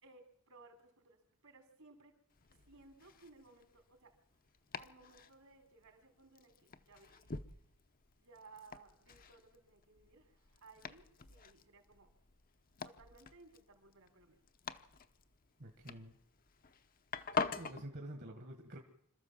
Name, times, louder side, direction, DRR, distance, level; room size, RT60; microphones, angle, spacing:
voice 1, 0.0-2.2 2.5-4.2 4.8-7.4 8.2-12.1 12.8-14.4, right 3 dB, 70° right, 5 dB, 3.7 m, -61 dB
Domestic sounds home sounds, 2.3-17.8, left 5 dB, 40° left, 0.8 m, -47 dB
voice 2, 15.6-16.2 17.3-18.8, right 1 dB, 50° right, 3 dB, 1.6 m, -48 dB
26.5 x 13.5 x 7.4 m, 0.74 s
head